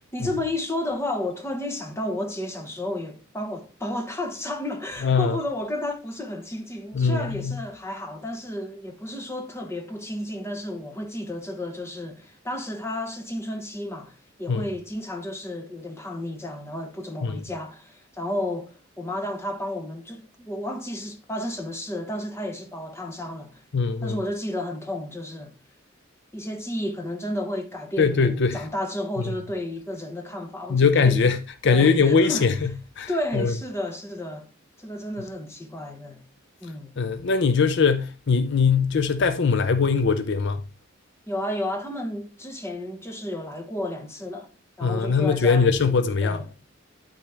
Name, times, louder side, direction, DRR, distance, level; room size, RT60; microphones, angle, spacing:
voice 1, 0.1-23.6 24.0-25.5 26.3-31.2 31.7-32.5 33.1-34.5 34.8-36.2 36.6-36.9 41.3-44.5 44.8-46.5, left 1 dB, 15° left, 1.1 m, -32 dB
voice 2, 5.0-5.4 6.9-7.5 14.5-14.7 17.2-17.4 23.7-24.2 28.0-28.6 30.7-32.7 33.0-33.5 37.0-40.6 44.8-46.4, left 5 dB, 60° left, 0.5 m, -21 dB
11.5 x 4.2 x 3.4 m
head